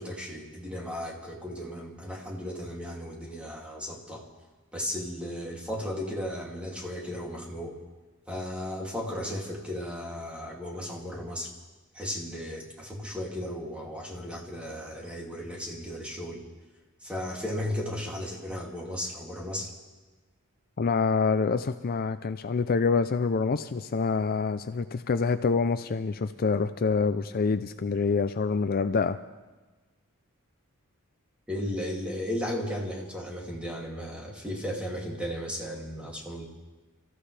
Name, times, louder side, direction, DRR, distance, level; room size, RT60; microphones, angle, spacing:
voice 1, 0.0-4.3 4.7-7.8 8.3-11.5 11.9-16.4 17.0-19.7 31.5-36.4, left 1 dB, 5° right, -2 dB, 2.5 m, -35 dB
voice 2, 20.8-29.2, left 4 dB, 45° left, 10 dB, 0.4 m, -26 dB
29.0 x 14.5 x 3.3 m, 1.2 s
head